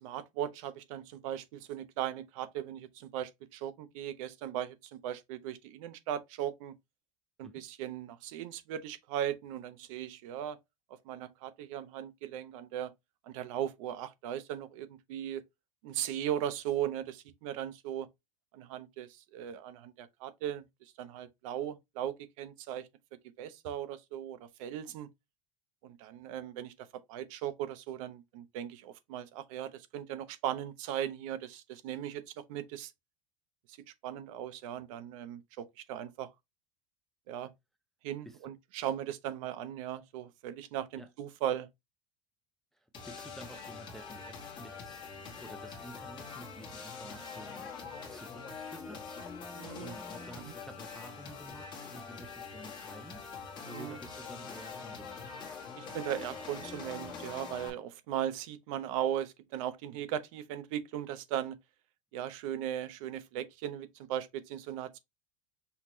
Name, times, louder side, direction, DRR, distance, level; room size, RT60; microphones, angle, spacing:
voice 1, 0.0-6.7 7.4-10.6 11.1-12.9 13.3-15.4 15.8-18.1 18.5-20.6 21.0-22.9 23.4-25.1 25.8-32.9 34.0-36.3 37.3-37.5 38.0-41.7 49.5-50.0 50.4-50.5 53.7-54.0 55.7-61.6 62.1-65.0, right 11 dB, 70° right, 0.8 m, -38 dB
voice 2, 42.7-55.5, equal, ahead, 0.3 m, -51 dB
sound 1, 42.9-57.7, left 5 dB, 25° left, 1.3 m, -44 dB
5.7 x 2.9 x 3.0 m
cardioid pair, 170°, 18 cm